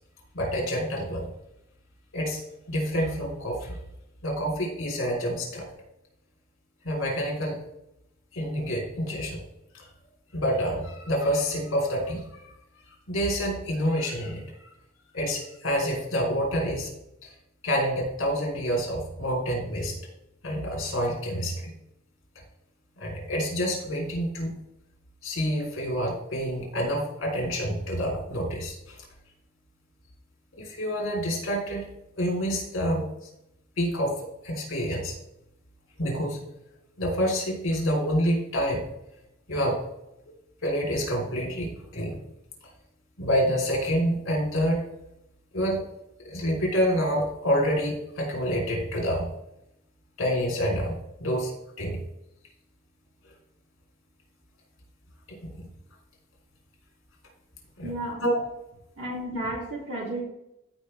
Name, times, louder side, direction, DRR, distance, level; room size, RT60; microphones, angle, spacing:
voice 1, 0.3-1.3 2.1-2.4 2.7-3.8 4.2-5.7 6.8-7.6 8.3-9.4 9.7-9.8 10.3-12.2 13.1-14.4 15.1-16.9 17.6-20.0 20.4-21.7 23.0-24.5 25.2-29.0 30.6-31.9 32.2-33.0 33.8-34.2 34.4-35.1 36.0-36.4 37.0-38.8 39.5-39.8 40.6-42.2 43.2-44.8 45.5-45.8 46.2-49.3 50.2-51.5 51.8-52.0 55.3-55.6 57.8-57.9 58.2-58.4, equal, 70° left, -1 dB, 3.2 m, -27 dB
voice 2, 57.8-58.2 59.0-60.2, right 1 dB, 65° right, -3 dB, 2.6 m, -33 dB
14.5 x 5.0 x 3.3 m, 0.85 s
head